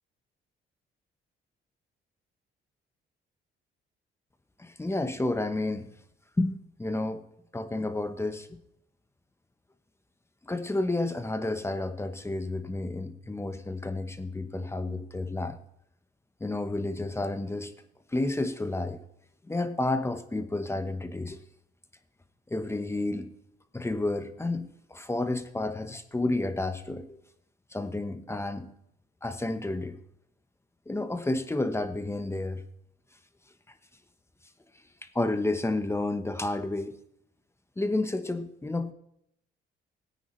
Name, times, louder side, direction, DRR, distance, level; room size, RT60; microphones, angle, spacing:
voice 1, 4.6-5.9 6.4-7.2 7.5-8.6 10.4-15.6 16.4-17.7 18.1-19.0 19.4-21.4 22.5-23.3 23.7-27.2 27.7-28.7 29.2-30.0 30.9-32.6 35.1-37.0 37.8-38.9, left 2 dB, 15° left, 1.0 m, -31 dB
17.0 x 9.3 x 3.2 m
cardioid pair, 90°, 20 cm